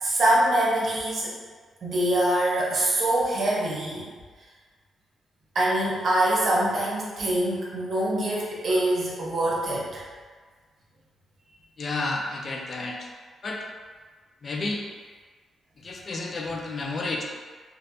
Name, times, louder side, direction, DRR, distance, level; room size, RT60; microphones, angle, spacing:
voice 1, 0.0-1.3 1.8-4.1 5.5-10.0, right 1 dB, 60° right, -5 dB, 0.9 m, -24 dB
voice 2, 11.8-13.1 13.4-13.6 14.4-14.8 15.8-17.2, left 2 dB, 50° left, 0 dB, 0.5 m, -31 dB
3.3 x 2.7 x 2.7 m, 1.5 s
supercardioid pair, 55°, 0 cm